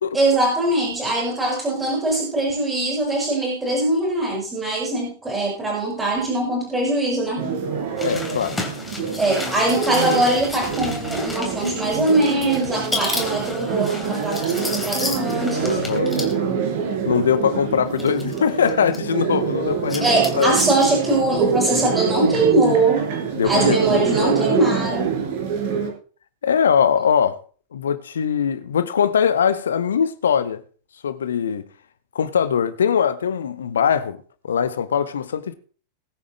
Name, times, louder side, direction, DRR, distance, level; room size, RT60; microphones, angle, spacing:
voice 1, 0.1-7.5 9.2-15.8 20.0-23.1 23.4-25.1, right 2 dB, 15° right, 6.0 m, -22 dB
sound 1, 7.4-25.9, right 6 dB, 50° right, 4.7 m, -25 dB
voice 2, 8.0-8.6 9.0-9.2 15.7-16.1 17.0-20.5 23.3-24.3 26.4-27.4 27.7-30.6 31.0-31.7 32.1-34.2 34.4-35.5, left 7 dB, 65° left, 1.1 m, -21 dB
sound 2, 8.0-16.3 17.1-17.2 17.9-19.0 19.7-21.0 21.3-21.4, left 3 dB, 10° left, 3.3 m, -32 dB
20.5 x 9.2 x 3.2 m
figure-of-eight pair, 90°, 0 cm